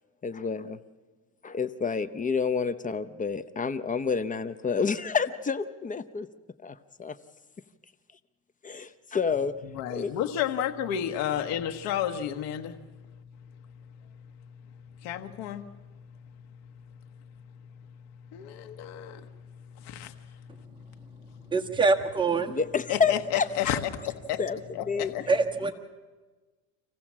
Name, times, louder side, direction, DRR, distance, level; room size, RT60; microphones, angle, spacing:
voice 1, 0.2-0.8 1.4-6.3 6.6-7.2 8.6-9.5 9.9-10.1 22.5-23.7 24.4-25.3, left 5 dB, 25° left, 0.7 m, -29 dB
voice 2, 9.7-21.5 22.9-23.8 24.0-24.4 24.7-25.3, left 10 dB, 85° left, 1.3 m, -34 dB
voice 3, 21.5-22.6 25.3-25.7, right 4 dB, 15° right, 1.5 m, -24 dB
26.0 x 15.5 x 7.4 m
cardioid pair, 120°, 34 cm